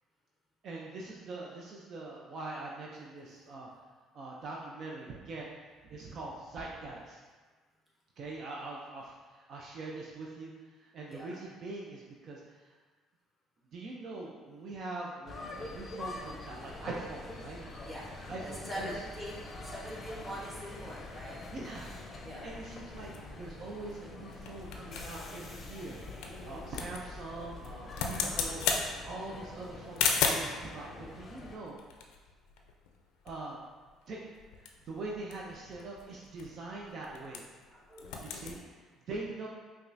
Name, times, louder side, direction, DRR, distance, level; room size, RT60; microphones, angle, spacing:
voice 1, 0.6-3.7 4.1-5.5 5.8-7.2 8.2-9.1 9.5-10.5 10.8-12.4 13.7-17.6 18.3-19.0 21.5-21.9 22.4-31.8 33.2-33.6 34.1-34.3 34.9-37.4 38.2-38.6 39.1-39.5, right 2 dB, 55° right, -3 dB, 0.5 m, -43 dB
voice 2, 11.0-11.4 17.8-18.0 18.4-21.4 22.2-22.4 26.3-26.7 37.7-38.6, equal, 10° right, -6 dB, 1.2 m, -44 dB
sound 1, 15.3-31.6, left 2 dB, 40° left, 0.6 m, -45 dB
sound 2, 23.1-30.6 31.4-33.0 33.3-33.4 33.6-33.9 34.3-37.7 37.9-38.6, left 5 dB, 85° left, 0.4 m, -36 dB
5.3 x 2.3 x 2.6 m, 1.4 s
supercardioid pair, 85°, 0 cm